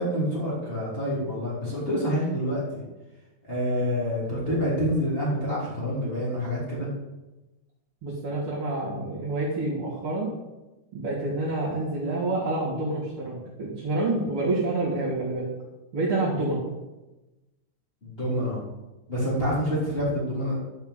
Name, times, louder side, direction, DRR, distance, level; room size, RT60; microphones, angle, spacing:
voice 1, 0.0-2.8 3.5-6.9 18.0-18.6 19.1-20.6, equal, 25° left, -7 dB, 3.6 m, -27 dB
voice 2, 8.0-10.3 10.9-15.5 15.9-16.6, right 2 dB, 75° right, -9 dB, 3.6 m, -28 dB
12.0 x 5.9 x 8.2 m, 1.1 s
omnidirectional pair, 2.3 m